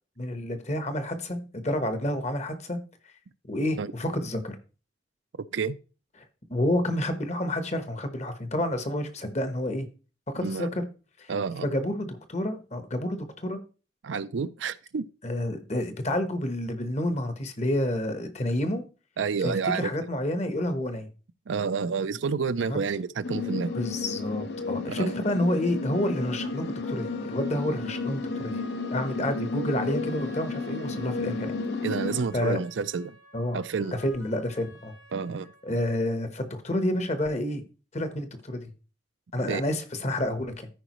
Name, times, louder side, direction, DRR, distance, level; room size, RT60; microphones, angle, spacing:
voice 1, 0.2-2.8 3.5-4.6 6.2-6.3 6.5-9.9 10.3-10.8 11.2-11.3 11.6-13.6 15.2-18.8 19.4-21.1 22.6-22.8 23.7-28.6 28.9-31.5 32.3-32.6 33.3-33.6 34.0-34.9 35.6-37.6 37.9-38.7 39.3-40.7, left 1 dB, 35° left, 1.1 m, -29 dB
voice 2, 11.3-11.7 14.0-15.1 19.2-19.9 21.5-23.7 25.0-25.1 31.8-33.2 33.5-34.0 35.1-35.5 39.5-39.6, right 5 dB, 80° right, 0.5 m, -29 dB
sound 1, 23.2-32.2, left 3 dB, 60° left, 0.8 m, -32 dB
sound 2, 25.3-36.3, left 2 dB, 90° left, 1.9 m, -51 dB
13.5 x 5.0 x 3.0 m
head